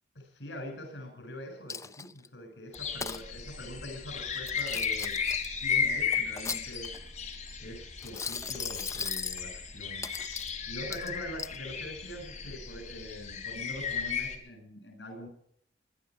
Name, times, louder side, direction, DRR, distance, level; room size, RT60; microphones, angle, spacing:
voice 1, 0.3-5.2 5.6-6.9 7.6-10.1 10.7-15.3, left 1 dB, 75° left, 5 dB, 7.9 m, -43 dB
Coin (dropping), 1.7-2.3 2.7-3.2 4.3-5.5 6.1-7.1 8.0-9.4 10.0-10.5 10.9-11.6, left 5 dB, 15° left, 0.5 m, -37 dB
sound 1, 2.7-14.4, left 6 dB, 40° left, 3.6 m, -35 dB
21.0 x 12.0 x 5.0 m, 0.66 s
head